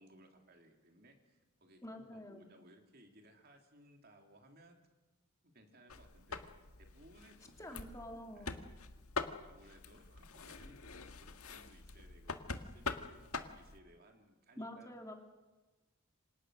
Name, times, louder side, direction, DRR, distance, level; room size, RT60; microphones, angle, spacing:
voice 1, 0.0-4.8 5.4-6.5 6.8-7.8 8.3-8.5 9.4-14.9, right 1 dB, 45° right, 3 dB, 3.2 m, -62 dB
voice 2, 1.8-2.5 7.6-8.6 14.6-15.1, left 1 dB, 15° left, 2 dB, 2.9 m, -47 dB
sound 1, 5.9-13.8, left 4 dB, 75° left, 1.7 m, -45 dB
28.0 x 26.0 x 6.5 m, 1.1 s
head